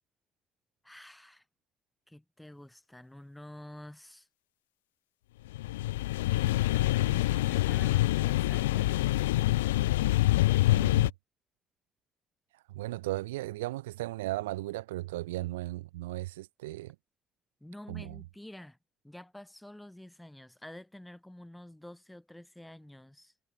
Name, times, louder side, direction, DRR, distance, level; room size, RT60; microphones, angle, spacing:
voice 1, 0.8-1.4 2.1-4.3 6.3-9.1 17.6-18.8 19.0-23.3, left 1 dB, 10° left, 7.4 m, -49 dB
sound 1, 5.5-11.1, left 17 dB, 85° left, 0.5 m, -26 dB
voice 2, 10.7-11.1 12.7-16.9 17.9-18.2, right 17 dB, 85° right, 1.2 m, -36 dB
hypercardioid pair, 45°, 0 cm